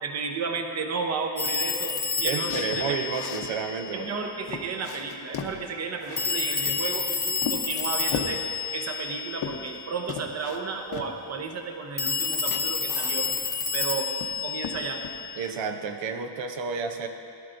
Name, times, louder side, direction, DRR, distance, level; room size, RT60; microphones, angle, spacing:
voice 1, 0.0-3.0 3.9-8.4 8.7-13.3 13.7-14.1 14.4-15.0, right 5 dB, 35° right, 4 dB, 0.8 m, -33 dB
Telephone, 1.4-4.0 6.2-9.8 12.0-15.5, left 5 dB, 20° left, 0.6 m, -30 dB
voice 2, 2.2-4.1 15.4-17.1, right 5 dB, 70° right, 6 dB, 0.8 m, -31 dB
sound 1, 2.4-3.5 4.1-4.2 4.5-5.6 6.0-7.0 7.4-8.4 9.0-9.8 10.1-10.6 10.9-11.1 12.1-12.3 12.5-13.6 13.9-14.4 14.6-15.2, left 7 dB, 50° left, 0.8 m, -36 dB
18.0 x 12.0 x 2.6 m, 2.6 s
wide cardioid pair, 170°, 46 cm